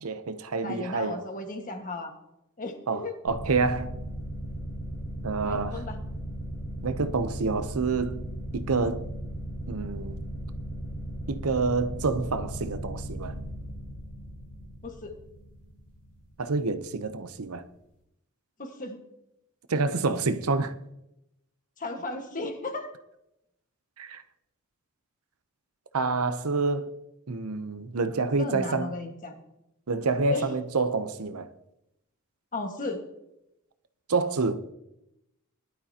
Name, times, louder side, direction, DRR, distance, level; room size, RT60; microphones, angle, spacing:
voice 1, 0.0-1.3 2.9-3.9 5.2-5.8 6.8-8.2 8.5-9.1 9.7-10.2 11.3-13.4 16.4-17.6 19.7-20.7 24.0-24.2 25.9-26.9 27.3-28.9 29.9-31.5 34.1-34.6, right 4 dB, 75° right, 0.8 m, -28 dB
voice 2, 0.6-2.1 2.6-3.2 5.4-6.0 14.8-15.1 18.6-19.0 21.8-22.9 28.4-29.4 30.3-30.5 32.5-33.0, left 2 dB, 35° left, 1.6 m, -35 dB
sound 1, 3.3-16.5, equal, 65° left, 3.7 m, -37 dB
19.5 x 11.5 x 2.9 m
head